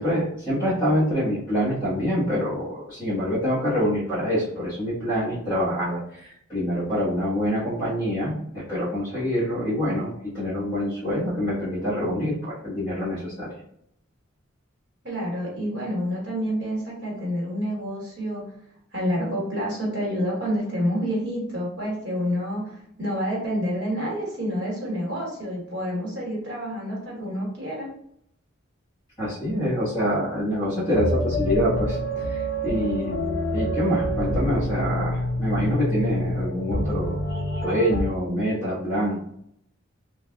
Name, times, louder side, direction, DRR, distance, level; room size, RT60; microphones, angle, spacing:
voice 1, 0.0-13.5 29.2-33.2 33.5-39.2, equal, 20° left, -13 dB, 1.2 m, -26 dB
voice 2, 15.0-18.4 18.9-27.9, equal, 55° right, -4 dB, 1.2 m, -28 dB
sound 1, 30.9-38.0, equal, 70° left, 0.5 m, -26 dB
3.3 x 2.3 x 2.3 m, 0.72 s
head